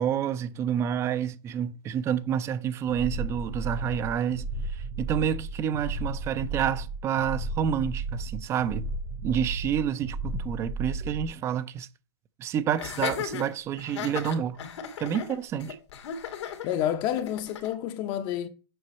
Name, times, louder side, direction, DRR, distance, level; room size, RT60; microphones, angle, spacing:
voice 1, 0.0-8.9 9.2-11.9 12.4-14.6 15.0-15.8, right 9 dB, 20° right, 0.4 m, -29 dB
sound 1, 2.9-11.3, right 3 dB, 75° right, 3.5 m, -33 dB
Laughter, 12.8-17.7, left 8 dB, 85° left, 2.1 m, -36 dB
voice 2, 16.6-18.5, left 11 dB, 30° left, 0.6 m, -29 dB
7.8 x 5.3 x 4.1 m
supercardioid pair, 160°, 14 cm